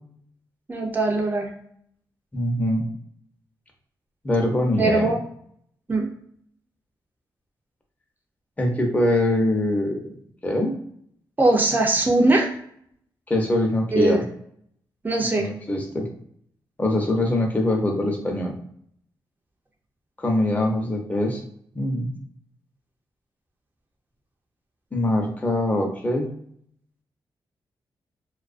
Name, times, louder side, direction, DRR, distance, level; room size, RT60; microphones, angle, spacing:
voice 1, 0.7-1.5 4.8-5.2 5.9-6.1 11.4-12.5 13.9-14.2 15.0-15.5, right 2 dB, 20° right, 0 dB, 0.5 m, -20 dB
voice 2, 2.3-2.8 4.2-5.1 8.6-10.2 10.4-10.8 13.3-14.2 15.4-16.1 16.8-18.5 20.2-21.4 21.7-22.1 24.9-26.3, left 1 dB, 20° left, 1 dB, 0.7 m, -23 dB
2.3 x 2.2 x 2.4 m, 0.66 s
cardioid pair, 70°, 8 cm